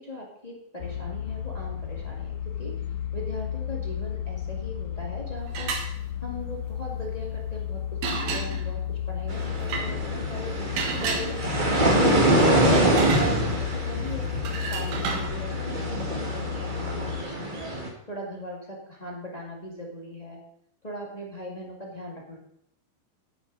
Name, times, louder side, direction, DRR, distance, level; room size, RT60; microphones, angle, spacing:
voice 1, 0.0-2.7 3.1-5.7 6.2-10.5 10.9-12.6 13.2-17.7 18.1-20.4 20.8-22.4, equal, 15° left, -2 dB, 1.4 m, -39 dB
sound 1, 0.8-17.2, left 10 dB, 70° left, 2.3 m, -33 dB
sound 2, 5.5-5.9 8.0-8.7 9.6-9.9 10.8-11.7 12.4-13.8 14.4-15.3, right 5 dB, 85° right, 3.4 m, -31 dB
sound 3, 9.3-17.9, right 1 dB, 30° right, 0.9 m, -25 dB
11.0 x 9.7 x 4.1 m, 0.73 s
omnidirectional pair, 4.1 m